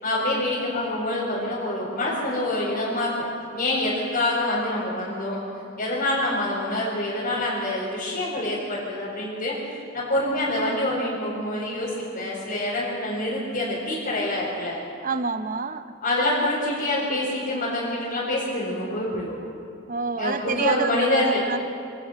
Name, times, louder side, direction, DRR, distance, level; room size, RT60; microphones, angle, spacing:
voice 1, 0.0-3.1 3.5-5.4 5.8-9.5 9.9-14.8 16.0-19.3 20.2-21.4, left 1 dB, 50° left, -9 dB, 4.8 m, -26 dB
voice 2, 15.0-16.0 19.9-21.6, right 4 dB, 45° right, 11 dB, 0.8 m, -27 dB
26.0 x 18.5 x 5.7 m, 2.6 s
head